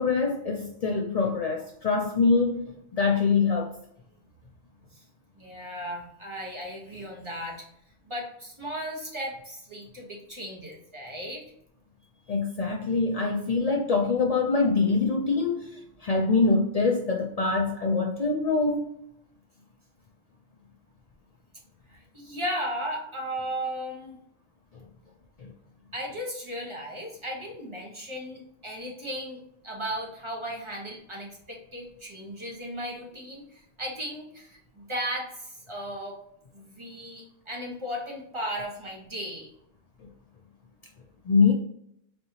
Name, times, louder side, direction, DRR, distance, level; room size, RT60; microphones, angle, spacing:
voice 1, 0.0-3.7 12.3-18.9 25.4-25.5 41.3-41.5, left 4 dB, 90° left, 1 dB, 0.3 m, -24 dB
voice 2, 5.3-7.6 8.0-11.4 21.9-24.2 25.9-29.4 29.6-36.2 36.5-39.5, equal, 25° right, -3 dB, 1.1 m, -36 dB
4.4 x 2.7 x 2.8 m, 0.74 s
omnidirectional pair, 1.3 m